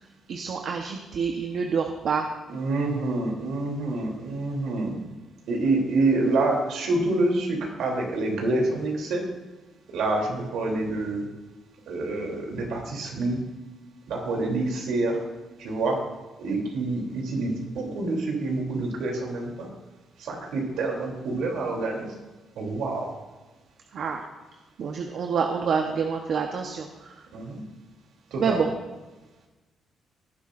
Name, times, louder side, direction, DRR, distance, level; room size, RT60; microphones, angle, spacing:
voice 1, 0.3-2.3 4.8-5.1 23.9-24.2 24.8-26.9 28.4-28.7, right 6 dB, 60° right, 3 dB, 1.0 m, -27 dB
voice 2, 2.5-4.9 5.5-9.2 9.9-11.3 11.9-13.4 14.1-15.2 15.6-16.0 16.4-19.7 20.2-22.1 22.6-23.2 27.3-27.6 28.3-28.6, right 2 dB, 80° right, 0 dB, 3.1 m, -27 dB
18.0 x 10.0 x 2.6 m, 1.2 s
cardioid pair, 90°, 0 cm